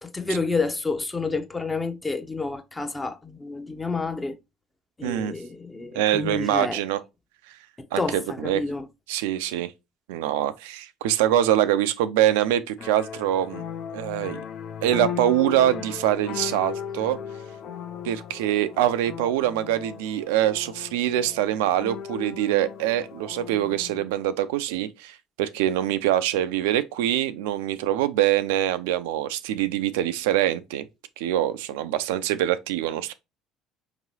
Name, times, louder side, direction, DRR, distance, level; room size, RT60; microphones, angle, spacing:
voice 1, 0.0-4.4 5.0-6.8 7.8-8.9, left 3 dB, 15° left, 0.7 m, -29 dB
voice 2, 5.0-5.3 5.9-7.0 7.5-7.6 7.9-8.0 8.4-8.6 9.1-9.7 10.1-13.6 13.9-14.4 14.8-17.2 18.0-30.8 31.2-33.1, right 12 dB, 70° right, 0.3 m, -24 dB
sound 1, 12.8-24.0, left 8 dB, 55° left, 0.5 m, -37 dB
5.1 x 3.0 x 2.6 m
figure-of-eight pair, 60°, 0 cm